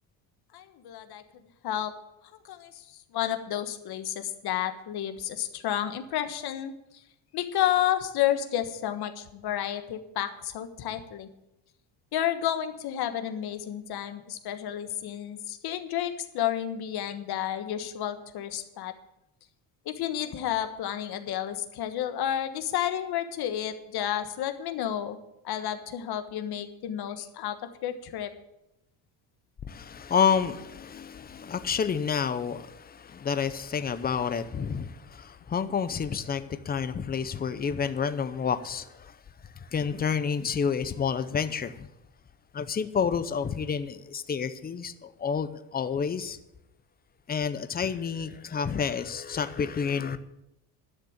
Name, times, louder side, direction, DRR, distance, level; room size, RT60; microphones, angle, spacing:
voice 1, 0.5-1.2 1.6-1.9 2.3-6.7 7.3-11.3 12.1-18.9 19.8-25.2 25.4-28.3, left 11 dB, 55° left, 1.4 m, -31 dB
voice 2, 29.7-39.2 39.5-41.9 42.5-46.4 47.3-50.2, left 6 dB, 20° left, 0.6 m, -29 dB
11.5 x 6.7 x 8.8 m
cardioid pair, 145°, 46 cm